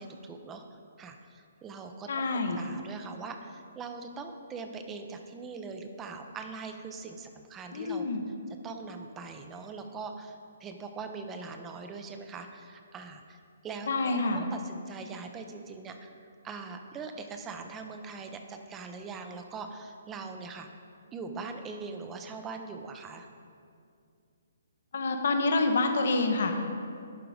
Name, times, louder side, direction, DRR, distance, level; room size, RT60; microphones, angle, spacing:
voice 1, 0.0-2.1 2.6-8.1 8.6-13.4 13.6-16.1 16.4-20.7 21.1-23.3, right 4 dB, 15° right, 6 dB, 0.6 m, -42 dB
voice 2, 2.1-2.6 7.7-8.2 13.9-14.4 24.9-26.5, left 3 dB, 65° left, 5 dB, 0.9 m, -27 dB
11.0 x 3.9 x 4.9 m, 2.4 s
hypercardioid pair, 150°, 0 cm